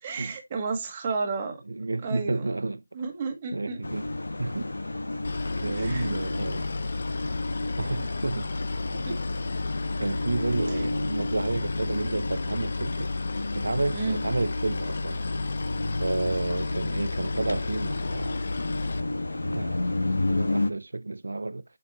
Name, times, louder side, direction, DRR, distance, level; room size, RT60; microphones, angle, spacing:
voice 1, 0.0-1.6 2.0-2.5 2.9-3.8 5.7-6.1 8.0-8.1 9.1-9.2 10.7-10.8 13.9-14.2, right 4 dB, 20° right, 1.4 m, -32 dB
voice 2, 1.7-2.8 3.5-4.1 4.4-4.7 5.6-6.7 7.8-8.5 9.1-9.2 10.0-13.1 13.5-15.2 16.0-18.4 19.5-21.6, right 2 dB, 75° right, 0.5 m, -31 dB
sound 1, 3.8-20.7, left 2 dB, 90° left, 1.1 m, -32 dB
Boat Water vehicle, 5.2-19.0, left 3 dB, 45° left, 0.6 m, -33 dB
7.1 x 5.3 x 2.9 m
figure-of-eight pair, 175°, 0 cm